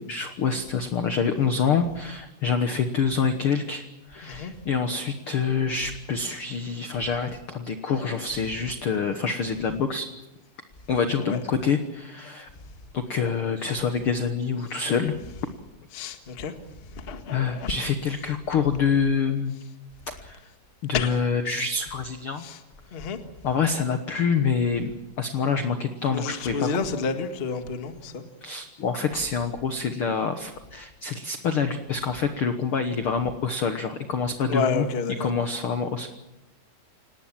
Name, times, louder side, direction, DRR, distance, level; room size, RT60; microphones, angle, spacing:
voice 1, 0.0-10.1 10.9-12.5 12.9-15.1 17.3-19.5 20.1-20.4 20.8-22.4 23.4-26.7 28.4-34.9 35.2-36.1, left 5 dB, 80° left, 8 dB, 1.2 m, -26 dB
voice 2, 15.9-16.5 16.9-17.7 20.9-21.1 22.4-22.6 22.9-23.2 26.1-28.2 34.5-35.3, left 5 dB, 45° left, 7 dB, 0.7 m, -29 dB
28.5 x 18.5 x 7.4 m, 0.97 s
omnidirectional pair, 4.3 m